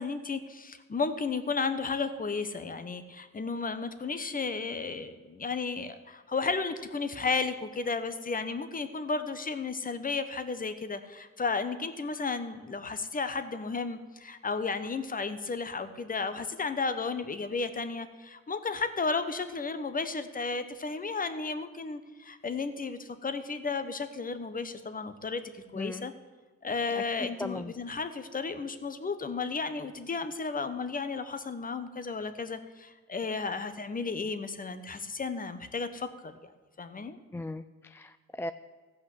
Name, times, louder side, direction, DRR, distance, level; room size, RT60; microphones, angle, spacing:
voice 1, 0.0-26.1 26.6-36.4 36.8-37.2, left 4 dB, 30° left, 10 dB, 1.1 m, -33 dB
voice 2, 25.7-26.1 27.0-27.7 37.3-38.5, left 2 dB, 10° left, 11 dB, 0.3 m, -38 dB
15.0 x 5.7 x 7.9 m, 1.4 s
cardioid pair, 90°, 30 cm